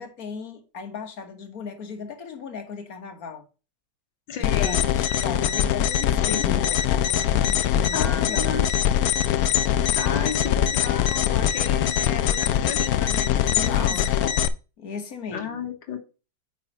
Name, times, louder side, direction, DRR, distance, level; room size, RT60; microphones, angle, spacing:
voice 1, 0.0-3.4 4.4-8.5 13.5-14.4 14.8-15.6, left 5 dB, 55° left, 1.7 m, -37 dB
voice 2, 4.3-4.9 6.3-6.7 7.9-8.6 9.9-14.1 15.3-16.0, left 6 dB, 90° left, 2.0 m, -33 dB
sound 1, 4.4-14.5, left 10 dB, 70° left, 0.9 m, -22 dB
9.1 x 5.5 x 2.9 m
omnidirectional pair, 2.0 m